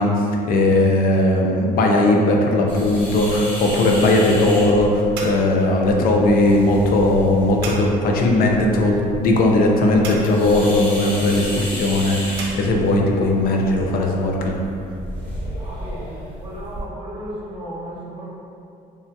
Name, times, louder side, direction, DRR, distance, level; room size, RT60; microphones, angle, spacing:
voice 1, 0.0-14.6, left 1 dB, 60° left, 0 dB, 0.4 m, -18 dB
sound 1, 2.7-16.8, equal, 10° left, 1.0 m, -33 dB
sound 2, 5.1-12.5, right 3 dB, 90° right, 0.5 m, -39 dB
voice 2, 15.5-18.3, right 1 dB, 30° right, -7 dB, 0.8 m, -35 dB
3.3 x 2.2 x 2.7 m, 2.5 s
cardioid pair, 110°, 17 cm